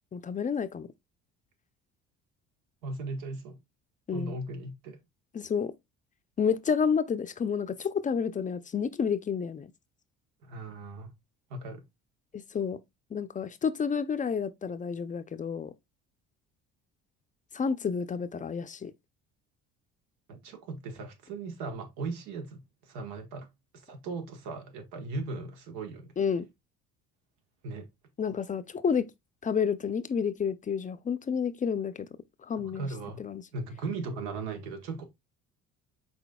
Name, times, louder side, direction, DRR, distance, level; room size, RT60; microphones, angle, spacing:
voice 1, 0.1-0.9 4.1-4.3 5.3-5.7 6.4-9.7 12.3-12.8 13.1-15.7 17.5-18.9 26.2-26.5 28.2-29.1 29.4-32.1 32.4-32.9 33.2-33.4, left 6 dB, 25° left, 0.5 m, -30 dB
voice 2, 2.8-3.6 4.1-5.0 10.4-11.1 11.5-11.9 20.3-23.5 23.7-26.1 27.6-27.9 32.5-33.2 33.5-35.0, right 3 dB, 85° right, 1.2 m, -38 dB
6.0 x 3.9 x 2.2 m
supercardioid pair, 90°, 29 cm